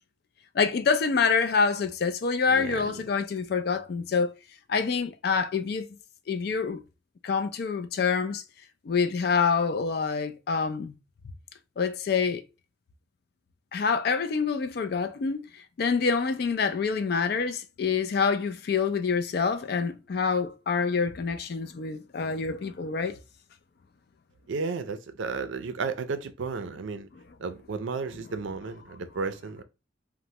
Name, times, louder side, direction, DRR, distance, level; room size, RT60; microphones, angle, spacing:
voice 1, 0.5-4.3 4.7-5.9 6.3-6.8 7.2-8.4 8.8-11.0 11.8-12.4 13.7-23.2 27.1-27.2, left 5 dB, 55° left, 0.3 m, -26 dB
voice 2, 2.5-3.0 24.5-27.1 27.4-29.6, right 4 dB, 75° right, 0.4 m, -33 dB
3.1 x 2.1 x 2.7 m
head